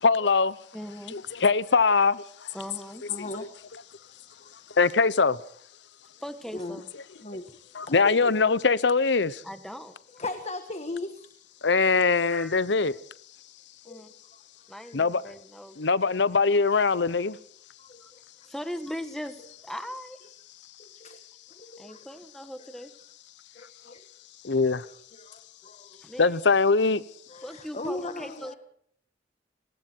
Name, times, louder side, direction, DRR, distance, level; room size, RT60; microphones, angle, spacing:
voice 1, 0.0-0.6 1.1-2.5 4.8-5.4 7.8-9.4 11.6-12.9 14.9-15.2 15.8-17.4 24.4-24.8 26.2-27.0, left 4 dB, 70° left, 0.8 m, -22 dB
voice 2, 0.7-1.2 2.5-3.1 6.2-6.9 9.4-9.9 12.3-12.5 13.8-14.1 14.7-15.8 16.0-16.1 18.0-18.1 18.5-20.2 21.8-22.9 26.0-26.3 27.4-28.6, equal, ahead, 1.5 m, -39 dB
voice 3, 3.1-3.5 3.9-4.1 4.4-4.7 6.5-6.8 7.2-8.3 10.1-11.3 12.2-12.3 13.8-14.0 14.3-14.4 14.8-15.0 15.7-16.1 17.8-18.2 20.8-21.2 21.5-22.1 22.6-22.7 23.5-24.1 24.7-26.2 27.3-28.6, left 2 dB, 35° left, 1.5 m, -39 dB
30.0 x 20.0 x 4.6 m
head